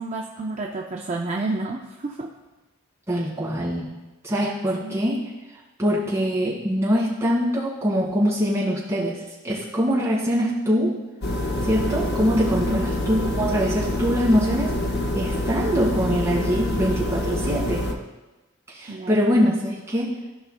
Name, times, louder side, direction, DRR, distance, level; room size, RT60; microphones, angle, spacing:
voice 1, 0.0-2.3 4.8-5.0 12.7-12.9 18.9-19.1, right 2 dB, 35° right, 0 dB, 0.5 m, -30 dB
voice 2, 3.1-3.9 4.2-5.2 5.8-11.0 11.6-14.8 15.1-17.8 18.7-20.1, equal, 15° right, -6 dB, 2.0 m, -23 dB
sound 1, 11.2-17.9, left 1 dB, 50° left, 0.8 m, -26 dB
15.0 x 5.4 x 2.2 m, 1.1 s
head